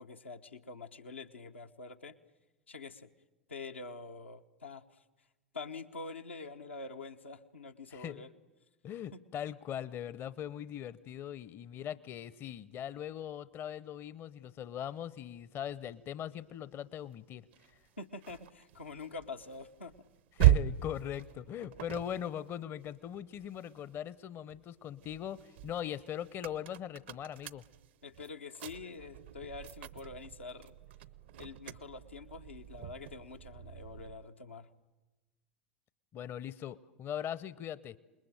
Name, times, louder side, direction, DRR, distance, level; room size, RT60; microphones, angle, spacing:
voice 1, 0.0-2.2 2.7-3.1 3.5-5.0 5.5-8.3 9.1-9.2 18.0-19.9 28.0-30.7 31.4-34.7, left 4 dB, 85° left, 3 dB, 1.1 m, -46 dB
voice 2, 7.9-8.3 8.8-17.4 20.4-27.6 36.1-38.0, left 10 dB, 35° left, 19 dB, 0.8 m, -40 dB
sound 1, 17.5-24.1 24.5-34.3, right 14 dB, 65° right, 0.8 m, -36 dB
27.5 x 21.0 x 9.1 m, 1.1 s
figure-of-eight pair, 80°, 6 cm